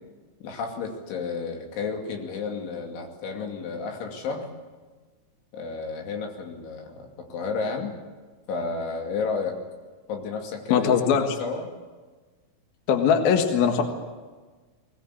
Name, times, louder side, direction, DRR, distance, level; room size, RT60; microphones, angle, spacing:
voice 1, 0.4-4.5 5.5-7.9 8.5-9.6 10.1-11.7, left 4 dB, 80° left, 2 dB, 4.9 m, -32 dB
voice 2, 10.7-11.2 12.9-13.8, left 7 dB, 60° left, 5 dB, 3.1 m, -20 dB
20.5 x 20.5 x 8.7 m, 1.3 s
omnidirectional pair, 5.3 m